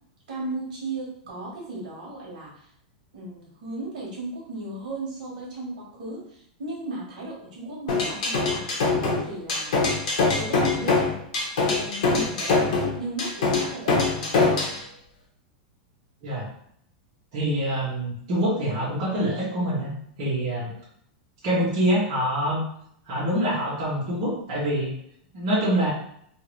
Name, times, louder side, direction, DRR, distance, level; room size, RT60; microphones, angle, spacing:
voice 1, 0.3-2.7 3.1-9.7 10.3-11.1 11.6-14.4, right 2 dB, 65° right, -4 dB, 1.3 m, -36 dB
sound 1, 7.9-14.8, left 3 dB, 50° left, 0.9 m, -23 dB
voice 2, 17.3-19.9 20.2-20.7 21.4-22.6 23.0-24.9 25.3-25.9, right 1 dB, 35° right, -7 dB, 1.1 m, -25 dB
2.7 x 2.5 x 3.1 m, 0.69 s
supercardioid pair, 180°, 5 cm